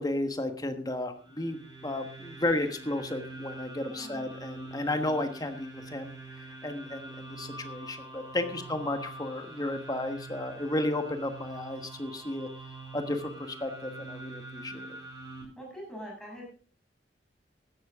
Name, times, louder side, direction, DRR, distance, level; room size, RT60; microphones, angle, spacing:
voice 1, 0.0-12.5 12.9-15.0, left 1 dB, 20° left, 7 dB, 1.3 m, -33 dB
sound 1, 1.1-15.4, right 2 dB, 25° right, 7.1 m, -45 dB
voice 2, 3.9-4.3 8.4-8.8 14.7-15.1 15.6-16.5, equal, 5° left, -3 dB, 7.0 m, -45 dB
15.5 x 12.0 x 3.6 m, 0.39 s
head